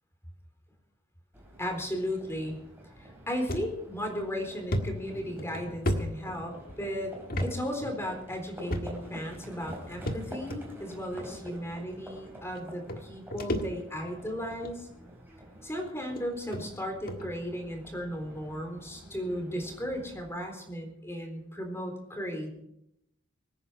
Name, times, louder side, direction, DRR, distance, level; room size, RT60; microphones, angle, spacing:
Livestock farm animals working animals, 1.3-20.3, right 1 dB, 10° right, 4.7 m, -48 dB
voice 1, 1.6-2.6 3.0-7.1 7.4-14.9 15.6-22.5, equal, 10° left, 3 dB, 3.9 m, -35 dB
sound 1, 3.5-3.7 4.1-4.2 4.7-6.8 7.3-7.5 7.8-7.9 8.7-9.2 10.1-10.6 11.5-11.6 12.6-12.7 12.9-14.1 14.5-14.8 15.6-15.7 16.2-16.3 16.5-16.6 17.1-17.3, equal, 45° left, 1.6 m, -32 dB
25.0 x 10.0 x 4.6 m, 0.78 s
head